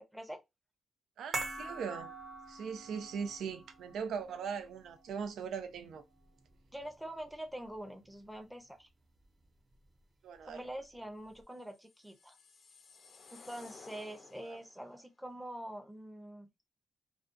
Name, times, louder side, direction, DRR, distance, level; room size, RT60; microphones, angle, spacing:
voice 1, 1.2-2.1 2.5-6.0 10.2-10.6 14.4-14.6, right 6 dB, 85° right, 0.5 m, -40 dB
sound 1, 1.3-7.7 8.0-8.2, right 2 dB, 45° right, 1.0 m, -45 dB
voice 2, 6.7-8.9 10.5-12.4 13.3-16.5, right 1 dB, 5° right, 0.6 m, -45 dB
sound 2, 11.7-14.9, left 4 dB, 60° left, 0.5 m, -56 dB
2.4 x 2.3 x 2.5 m
cardioid pair, 110°, 0 cm